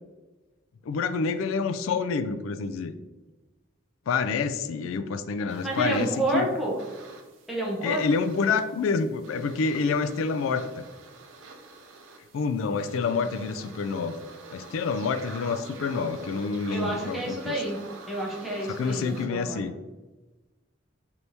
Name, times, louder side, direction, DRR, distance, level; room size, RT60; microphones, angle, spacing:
voice 1, 0.9-3.0 4.1-6.5 7.8-10.8 12.3-14.2 14.5-17.5 18.7-19.7, left 5 dB, 90° left, 10 dB, 0.3 m, -28 dB
sound 1, 5.5-19.3, right 3 dB, 80° right, 0.6 m, -46 dB
voice 2, 5.6-6.8 7.5-8.2 16.7-17.8 18.1-19.6, right 1 dB, ahead, -5 dB, 1.0 m, -29 dB
4.3 x 3.4 x 2.7 m, 1.1 s
head